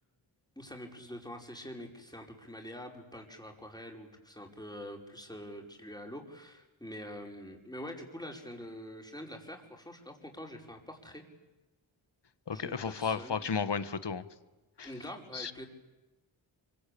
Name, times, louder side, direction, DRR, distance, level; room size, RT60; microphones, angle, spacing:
voice 1, 0.6-11.2 12.5-13.4 14.8-15.6, equal, 10° left, 1 dB, 5.4 m, -45 dB
voice 2, 12.5-14.2 14.8-14.9 15.3-15.5, left 6 dB, 55° left, 13 dB, 1.5 m, -33 dB
25.5 x 24.5 x 8.6 m, 1.1 s
cardioid pair, 45°, 50 cm